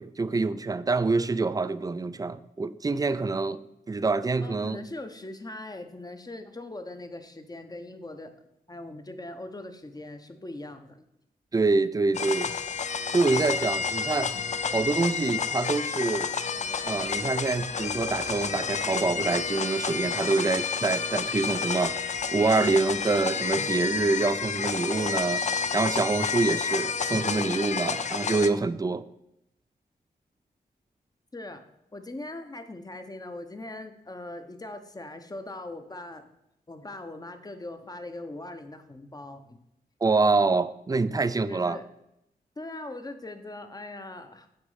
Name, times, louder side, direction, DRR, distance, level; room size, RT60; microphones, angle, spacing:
voice 1, 0.0-3.6 3.9-4.8 11.5-12.5 13.1-14.3 14.7-16.3 16.8-21.9 22.3-25.4 25.7-29.0 40.0-41.8, right 3 dB, 20° right, 0.4 m, -26 dB
voice 2, 4.4-8.3 8.7-11.1 31.3-31.6 31.9-36.3 36.7-39.6 41.5-41.8 42.6-44.5, left 2 dB, 25° left, 0.8 m, -40 dB
sound 1, 12.1-28.5, left 5 dB, 45° left, 0.4 m, -30 dB
7.9 x 3.1 x 5.5 m
cardioid pair, 65°, 17 cm